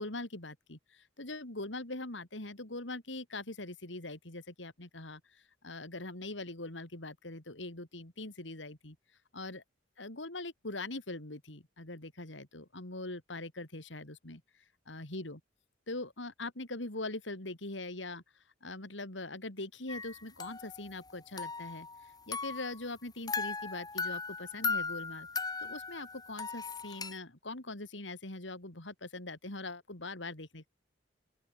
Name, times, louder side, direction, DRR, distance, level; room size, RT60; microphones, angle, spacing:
voice 1, 0.0-9.0 9.3-9.6 10.0-15.4 15.9-25.3 25.6-30.7, left 2 dB, 85° left, 3.8 m, -42 dB
sound 1, 19.9-21.1 21.4-22.8 23.3-27.2, left 4 dB, 20° left, 4.2 m, -38 dB
open air
head